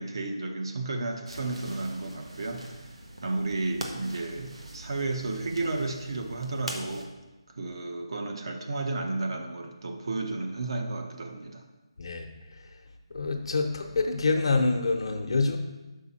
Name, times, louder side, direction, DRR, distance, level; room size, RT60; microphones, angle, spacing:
voice 1, 0.0-2.7 3.2-7.1 7.5-11.7, right 2 dB, 55° right, 3 dB, 0.9 m, -32 dB
sound 1, 1.3-7.1, right 1 dB, 90° right, 1.1 m, -43 dB
voice 2, 13.1-15.6, left 3 dB, 60° left, 3 dB, 0.9 m, -26 dB
5.9 x 5.5 x 4.2 m, 1.1 s
figure-of-eight pair, 165°, 3 cm